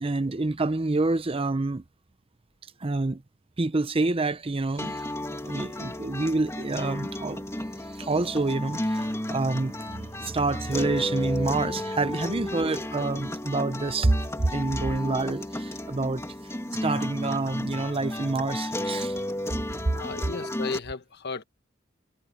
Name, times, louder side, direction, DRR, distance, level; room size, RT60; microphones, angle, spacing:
voice 1, 0.0-1.8 2.8-3.2 3.6-5.1 5.4-7.5 7.9-14.2 14.4-16.2 16.8-19.2, right 2 dB, 30° right, 0.7 m, -27 dB
sound 1, 4.8-20.8, left 1 dB, 15° left, 2.5 m, -33 dB
voice 2, 19.9-21.4, left 4 dB, 55° left, 1.3 m, -35 dB
head